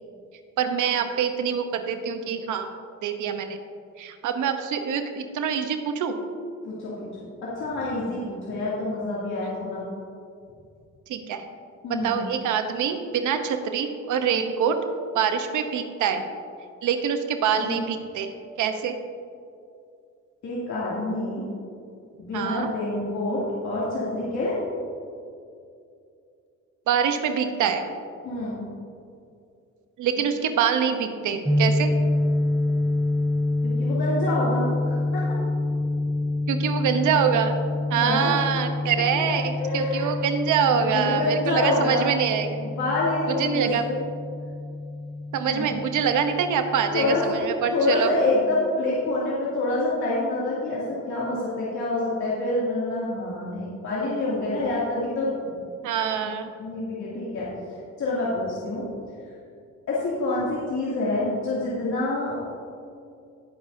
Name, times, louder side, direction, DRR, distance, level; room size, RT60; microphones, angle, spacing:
voice 1, 0.6-2.7 3.0-3.6 4.0-6.2 11.1-11.4 12.0-14.8 15.1-16.2 16.8-18.3 18.6-19.0 22.3-22.7 26.9-27.8 30.0-31.9 36.5-37.6 37.9-42.5 43.4-43.8 45.3-48.1 55.8-56.5, right 7 dB, 80° right, 6 dB, 0.9 m, -25 dB
voice 2, 7.2-9.8 11.8-12.3 17.6-17.8 20.4-21.4 22.2-24.6 28.2-28.6 33.8-35.4 38.0-38.6 39.6-40.1 40.7-42.1 42.6-44.1 45.5-45.8 46.9-47.3 47.7-55.4 56.6-57.5 58.0-58.8 59.9-62.4, left 2 dB, 65° left, -9 dB, 2.6 m, -27 dB
sound 1, 31.5-47.1, left 2 dB, 5° right, 0.6 m, -27 dB
19.5 x 6.4 x 2.7 m, 2.5 s
cardioid pair, 90°, 30 cm